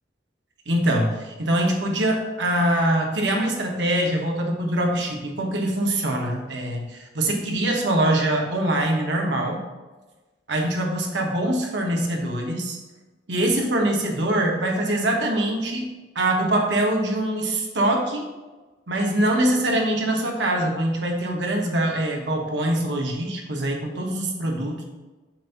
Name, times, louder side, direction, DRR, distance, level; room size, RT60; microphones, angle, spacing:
voice 1, 0.7-9.6 10.5-12.8 13.3-15.9 16.1-18.3 18.9-24.8, right 1 dB, 70° right, 1 dB, 1.1 m, -23 dB
7.3 x 2.6 x 5.6 m, 1.2 s
head